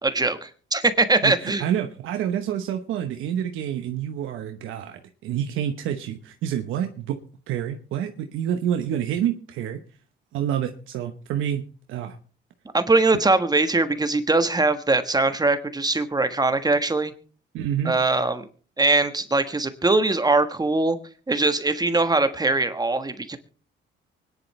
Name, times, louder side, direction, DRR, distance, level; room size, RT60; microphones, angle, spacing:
voice 1, 0.0-1.6 12.7-17.1 17.8-18.4 18.8-21.0 21.3-23.4, right 3 dB, 20° right, 9 dB, 1.4 m, -21 dB
voice 2, 1.2-7.2 7.5-9.8 10.3-12.2 17.5-17.9, right 10 dB, 90° right, 5 dB, 1.1 m, -28 dB
24.5 x 10.5 x 3.3 m, 0.40 s
cardioid pair, 90°, 20 cm